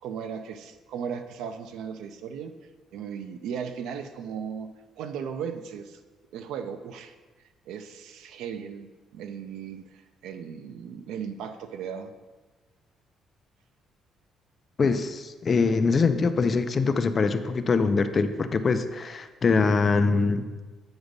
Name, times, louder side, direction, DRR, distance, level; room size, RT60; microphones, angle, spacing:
voice 1, 0.0-2.5 2.9-4.7 5.0-6.0 6.3-7.1 7.7-12.1, right 7 dB, 90° right, 9 dB, 0.5 m, -36 dB
voice 2, 14.8-20.5, left 4 dB, 25° left, 9 dB, 0.4 m, -23 dB
8.1 x 4.0 x 5.2 m, 1.3 s
cardioid pair, 170°, 0 cm